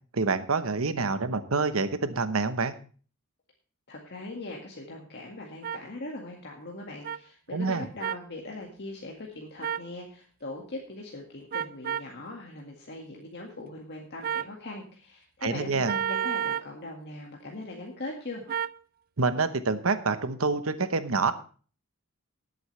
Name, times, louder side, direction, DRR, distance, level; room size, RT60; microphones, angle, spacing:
voice 1, 0.1-2.7 7.5-7.8 15.4-16.0 19.2-21.3, right 4 dB, 80° right, 11 dB, 1.0 m, -27 dB
voice 2, 3.9-18.4, left 2 dB, 55° left, -1 dB, 1.9 m, -40 dB
sound 1, 5.6-5.8 7.0-7.2 8.0-8.3 9.6-9.9 11.5-12.1 14.2-14.5 15.9-16.7 18.5-18.8, right 9 dB, 45° right, 0.4 m, -31 dB
19.5 x 7.9 x 3.3 m, 0.39 s
head